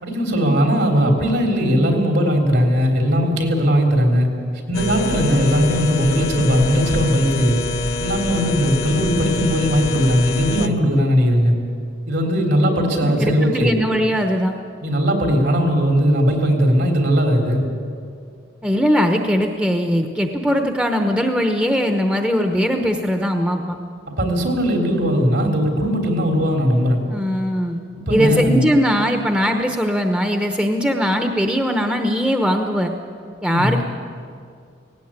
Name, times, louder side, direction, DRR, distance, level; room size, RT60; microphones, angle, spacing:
voice 1, 0.0-4.3 4.7-7.6 8.0-11.5 12.1-13.7 14.8-17.6 24.1-27.0 28.0-28.7 33.5-33.8, equal, 65° right, 2 dB, 3.6 m, -18 dB
sound 1, 4.7-10.7, left 3 dB, 50° left, 1.1 m, -25 dB
voice 2, 13.0-14.6 18.6-23.7 27.1-27.8 28.1-32.9 33.4-33.8, equal, 5° right, 4 dB, 0.9 m, -20 dB
18.0 x 17.5 x 8.9 m, 2.2 s
head